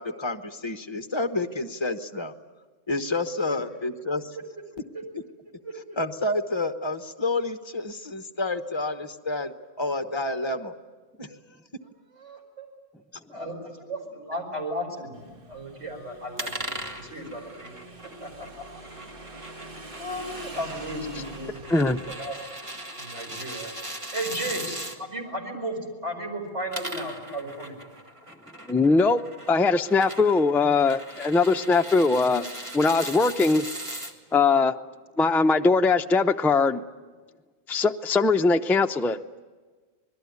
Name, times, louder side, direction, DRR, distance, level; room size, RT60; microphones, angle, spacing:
voice 1, 0.0-2.3 2.9-4.4 5.1-5.2 5.7-9.5 9.8-10.7 11.2-11.4, left 2 dB, 25° left, 7 dB, 1.1 m, -29 dB
voice 2, 5.6-6.0 12.1-12.7 13.3-13.6 13.9-17.7 18.2-18.5 20.0-22.4 22.9-23.7 24.1-27.8, right 1 dB, 70° right, 2 dB, 5.4 m, -35 dB
Motorcycle / Engine, 15.1-22.1, right 2 dB, 45° right, 1.7 m, -44 dB
sound 1, 16.4-25.0 26.5-34.1, right 1 dB, 25° right, 1.9 m, -39 dB
voice 3, 28.7-29.2 29.5-32.5 32.7-33.7 34.3-34.8 35.2-36.8 37.7-39.2, left 4 dB, 5° left, 6 dB, 0.3 m, -21 dB
26.5 x 20.5 x 9.6 m, 1.4 s
omnidirectional pair, 1.3 m